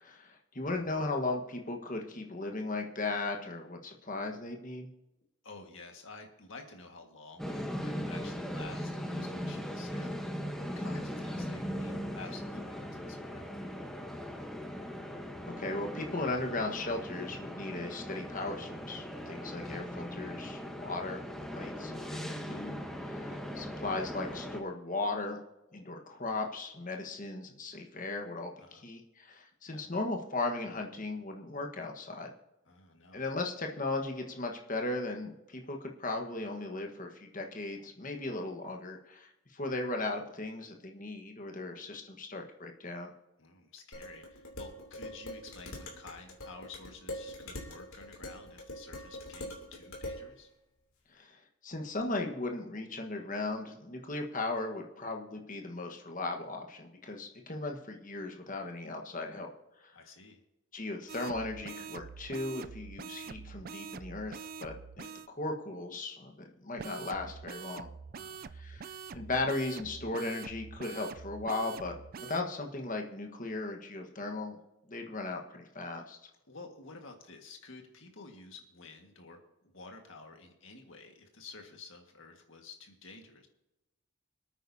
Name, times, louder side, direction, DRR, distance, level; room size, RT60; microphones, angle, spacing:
voice 1, 0.0-4.9 15.6-21.2 21.5-22.7 23.1-25.4 25.7-32.3 33.1-43.1 51.1-59.5 59.8-60.0 60.7-67.9 68.6-74.6 74.9-76.2, left 2 dB, 40° left, 3 dB, 1.4 m, -37 dB
voice 2, 5.4-10.3 10.6-13.5 28.6-28.9 29.7-29.9 32.7-33.2 43.4-50.5 59.9-60.4 68.1-68.5 76.5-83.5, left 3 dB, 65° left, 3 dB, 1.7 m, -51 dB
sound 1, 7.4-24.6, equal, ahead, 1.1 m, -39 dB
Dishes pots and pans, 43.9-50.3, left 1 dB, 80° left, 2.8 m, -43 dB
sound 2, 61.1-65.3 66.8-72.4, right 6 dB, 40° right, 0.4 m, -45 dB
26.0 x 9.0 x 2.8 m, 0.94 s
head